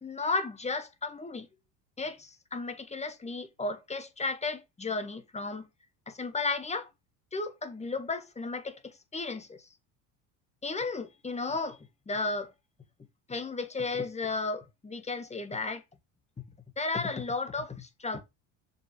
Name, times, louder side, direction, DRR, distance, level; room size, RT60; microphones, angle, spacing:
voice 1, 0.0-1.5 2.0-5.7 6.1-6.9 7.3-9.6 10.6-11.8 12.1-12.5 13.3-15.8 16.8-18.2, left 3 dB, 20° left, 1.7 m, -34 dB
6.8 x 5.7 x 5.3 m
supercardioid pair, 110°, 37 cm